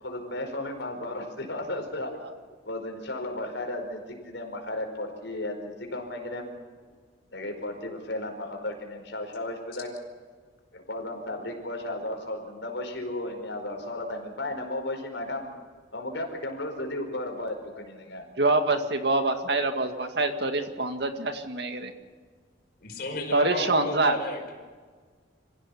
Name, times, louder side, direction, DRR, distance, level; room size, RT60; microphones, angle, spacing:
voice 1, 0.0-2.1 2.6-6.5 7.3-9.9 10.7-15.5 15.9-18.2, left 1 dB, 75° left, 3 dB, 4.9 m, -34 dB
voice 2, 18.4-21.9 23.3-24.2, right 2 dB, 60° right, 6 dB, 2.1 m, -25 dB
voice 3, 22.8-24.4, left 2 dB, 50° left, 2 dB, 5.1 m, -34 dB
26.0 x 16.0 x 7.2 m, 1.5 s
head